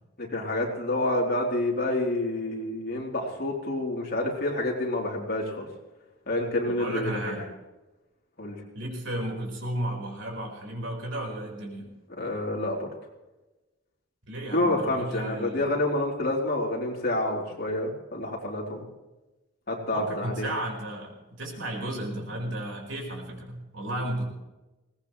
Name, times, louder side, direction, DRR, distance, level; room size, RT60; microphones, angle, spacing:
voice 1, 0.2-5.7 6.3-7.4 8.4-8.6 12.2-12.9 14.5-18.9 19.7-20.5, left 1 dB, 50° left, -1 dB, 3.6 m, -28 dB
voice 2, 6.6-7.4 8.7-11.9 14.3-15.7 19.9-24.2, right 1 dB, 65° right, 0 dB, 4.8 m, -34 dB
21.5 x 18.5 x 3.3 m, 1.1 s
head